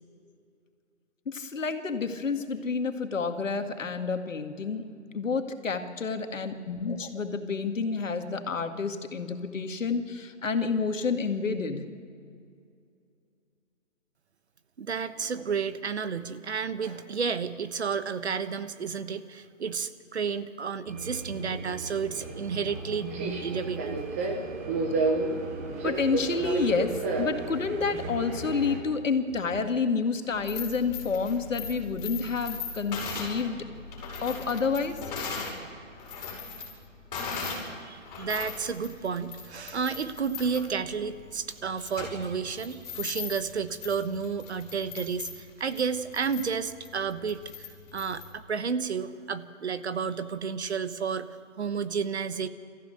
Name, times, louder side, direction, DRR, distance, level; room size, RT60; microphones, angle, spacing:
voice 1, 1.3-4.9 5.1-11.8 25.8-33.6 34.2-35.0, left 5 dB, 75° left, 6 dB, 2.1 m, -29 dB
voice 2, 14.8-24.0 37.9-47.7 47.9-51.3 51.6-52.5, right 6 dB, 55° right, 12 dB, 1.3 m, -31 dB
Subway metro underground, 20.9-28.8, right 3 dB, 10° right, 0.9 m, -32 dB
sound 1, 26.4-26.8 27.2-27.3 27.6-30.4 30.7-31.9 32.2-32.3, right 1 dB, 30° right, 4.1 m, -49 dB
sound 2, 30.3-35.6 35.9-37.7 38.0-48.3, left 5 dB, 30° left, 5.7 m, -39 dB
24.5 x 14.5 x 9.0 m, 2.4 s
hypercardioid pair, 165°, 39 cm